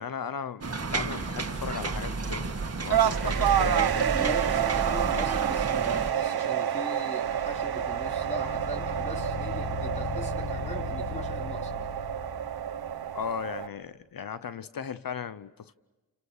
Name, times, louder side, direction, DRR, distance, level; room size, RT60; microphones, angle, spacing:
voice 1, 0.0-4.1 13.1-15.7, left 7 dB, 60° left, 0.9 m, -37 dB
sound 1, 0.6-6.1, right 4 dB, 40° right, 2.0 m, -32 dB
sound 2, 2.9-13.7, right 9 dB, 70° right, 0.9 m, -29 dB
voice 2, 4.0-11.8, equal, 15° left, 3.1 m, -40 dB
sound 3, 7.2-13.4, left 4 dB, 85° left, 5.7 m, -38 dB
30.0 x 29.5 x 6.5 m
cardioid pair, 50°, 38 cm